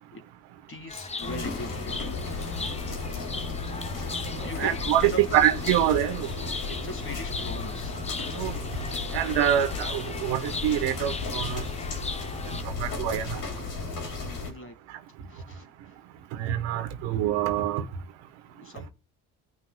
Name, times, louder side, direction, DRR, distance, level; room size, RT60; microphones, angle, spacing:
voice 1, 0.7-2.5 3.9-5.5 6.7-8.0 13.1-13.2 14.0-14.8 15.3-15.7 18.5-18.9, left 1 dB, 30° left, 1.9 m, -40 dB
Chirp tweet, 0.9-12.6, left 4 dB, 15° left, 0.7 m, -38 dB
sound 1, 1.2-14.5, left 3 dB, 60° left, 3.8 m, -34 dB
voice 2, 4.4-6.3 8.4-8.5 9.1-11.6 12.8-13.4 16.3-17.8, right 12 dB, 85° right, 1.2 m, -25 dB
16.5 x 6.1 x 2.2 m
supercardioid pair, 70°, 41 cm